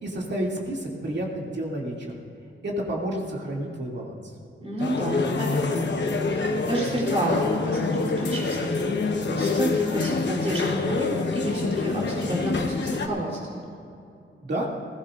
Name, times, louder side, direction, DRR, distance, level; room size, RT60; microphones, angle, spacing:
voice 1, 0.0-2.1 2.6-4.3 14.4-14.7, right 1 dB, 55° right, -3 dB, 2.6 m, -30 dB
voice 2, 4.6-8.7 9.0-13.6, right 1 dB, 30° right, -5 dB, 3.5 m, -30 dB
sound 1, 4.8-13.1, left 3 dB, 55° left, 1.1 m, -26 dB
21.0 x 16.5 x 2.6 m, 2.6 s
wide cardioid pair, 120°, 21 cm